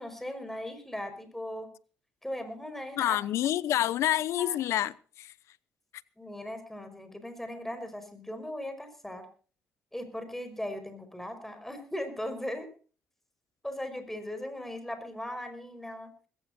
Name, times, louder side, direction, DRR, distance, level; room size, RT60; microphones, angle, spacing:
voice 1, 0.0-1.7 2.2-3.2 3.8-4.0 4.4-4.6 6.2-9.3 9.9-12.7 13.6-16.1, left 1 dB, 5° left, 5.2 m, -38 dB
voice 2, 3.0-5.3, left 12 dB, 75° left, 0.8 m, -28 dB
21.0 x 16.0 x 2.7 m
cardioid pair, 90°, 5 cm